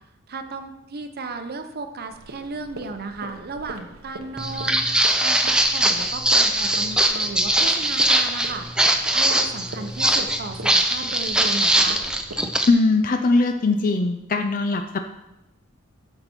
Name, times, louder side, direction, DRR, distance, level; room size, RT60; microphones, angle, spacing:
voice 1, 0.3-4.8 5.2-12.0, right 3 dB, 50° right, 8 dB, 0.7 m, -35 dB
sound 1, 2.1-12.4, right 2 dB, 85° right, 1.1 m, -41 dB
Walk footsteps, 4.4-12.7, right 1 dB, 5° right, 0.6 m, -21 dB
voice 2, 12.7-15.0, left 3 dB, 40° left, 6 dB, 0.5 m, -20 dB
9.9 x 6.7 x 4.4 m, 0.93 s
head